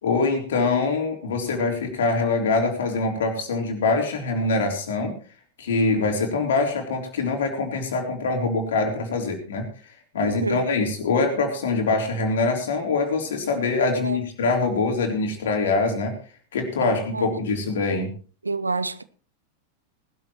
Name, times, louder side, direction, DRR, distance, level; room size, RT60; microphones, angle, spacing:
voice 1, 0.0-5.1 5.6-9.7 10.1-16.1 16.5-18.1, left 3 dB, 60° left, 3.5 m, -24 dB
voice 2, 10.2-10.7 14.0-14.2 16.8-17.3 18.4-19.0, right 3 dB, 80° right, 0.7 m, -28 dB
19.5 x 12.5 x 3.0 m
figure-of-eight pair, 90°, 0 cm